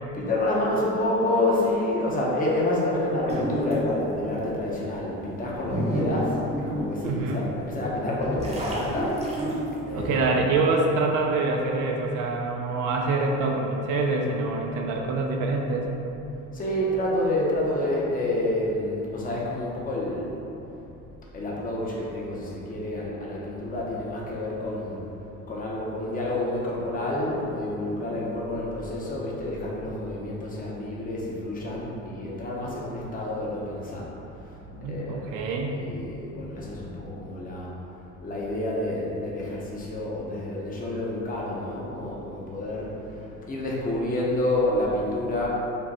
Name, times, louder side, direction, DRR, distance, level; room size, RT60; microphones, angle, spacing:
voice 1, 0.1-9.2 9.9-10.2 16.5-20.3 21.3-25.0 25.5-34.1 34.5-35.4 35.7-37.7 38.2-45.5, left 1 dB, 30° left, -4 dB, 0.8 m, -28 dB
sound 1, 3.3-4.0 4.6-4.7 5.3-7.4 7.9-10.1, right 1 dB, 20° right, 0.8 m, -29 dB
voice 2, 7.0-7.5 9.9-15.9 34.7-35.8, right 3 dB, 85° right, 0 dB, 0.6 m, -26 dB
5.2 x 2.2 x 4.1 m, 3.0 s
cardioid pair, 145°, 30 cm